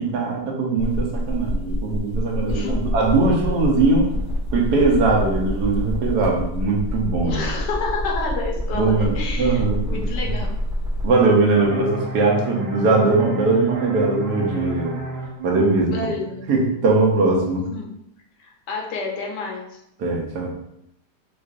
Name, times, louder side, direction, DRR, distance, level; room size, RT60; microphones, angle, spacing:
voice 1, 0.0-4.1 4.5-7.4 8.7-10.0 11.0-15.0 15.4-16.0 16.5-17.7 20.0-20.5, right 3 dB, 75° right, 0 dB, 1.2 m, -20 dB
sound 1, 0.8-11.1, equal, 60° left, 1.5 m, -26 dB
voice 2, 2.5-2.8 7.2-10.5 15.9-16.5 17.7-17.9 18.4-19.8, left 3 dB, 80° left, 0 dB, 1.4 m, -29 dB
sound 2, 11.6-17.0, right 3 dB, 60° right, 0.7 m, -32 dB
4.5 x 2.5 x 2.4 m, 0.78 s
omnidirectional pair, 1.8 m